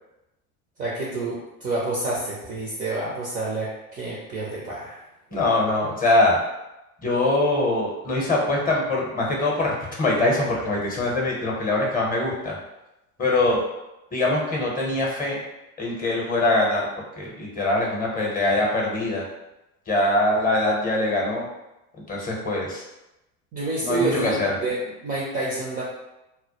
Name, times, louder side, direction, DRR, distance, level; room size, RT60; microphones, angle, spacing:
voice 1, 0.8-5.0 23.5-25.8, right 2 dB, 20° right, -5 dB, 0.4 m, -28 dB
voice 2, 5.3-6.4 7.0-9.7 10.0-12.6 13.2-13.6 14.1-15.4 15.8-16.9 17.2-19.2 19.9-21.4 22.1-22.8 23.8-24.5, left 2 dB, 20° left, -2 dB, 0.7 m, -23 dB
2.1 x 2.1 x 2.8 m, 0.94 s
hypercardioid pair, 90°, 43 cm